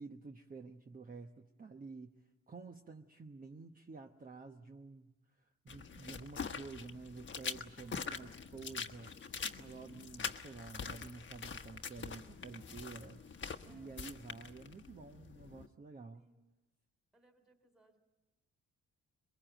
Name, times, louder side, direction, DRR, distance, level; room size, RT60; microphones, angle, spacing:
voice 1, 0.0-2.1 2.5-5.1 5.4-13.2 13.7-16.2, right 4 dB, 30° right, 4 dB, 1.1 m, -50 dB
sound 1, 5.7-15.7, left 5 dB, 40° left, 1.2 m, -44 dB
voice 2, 7.8-8.5 12.5-12.8 13.6-14.1 16.1-16.5 17.1-18.0, right 2 dB, ahead, 7 dB, 3.0 m, -70 dB
22.5 x 21.5 x 9.1 m, 1.1 s
cardioid pair, 90°, 30 cm